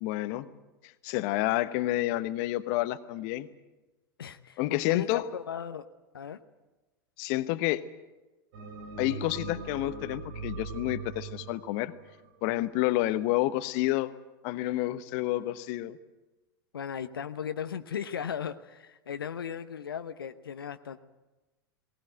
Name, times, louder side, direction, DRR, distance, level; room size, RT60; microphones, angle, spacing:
voice 1, 0.0-0.5 0.8-3.5 4.6-5.3 7.2-7.8 9.0-11.9 12.4-14.1 14.4-16.0, left 16 dB, 50° left, 12 dB, 1.1 m, -29 dB
voice 2, 4.2-5.8 6.1-6.4 16.7-21.0, left 8 dB, 75° left, 9 dB, 0.9 m, -37 dB
sound 1, 8.5-12.9, right 4 dB, 60° right, 2.9 m, -40 dB
19.5 x 19.0 x 9.1 m, 1.1 s
figure-of-eight pair, 90°, 12 cm